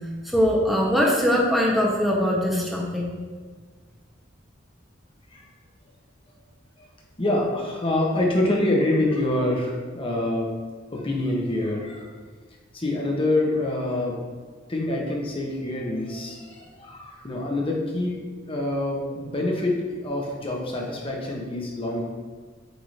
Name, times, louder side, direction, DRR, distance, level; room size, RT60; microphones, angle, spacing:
voice 1, 0.2-3.1, equal, ahead, -3 dB, 1.0 m, -21 dB
voice 2, 7.2-10.5 10.9-12.1 12.7-14.2 14.7-22.0, left 1 dB, 30° left, -1 dB, 1.1 m, -26 dB
8.2 x 2.9 x 4.9 m, 1.5 s
head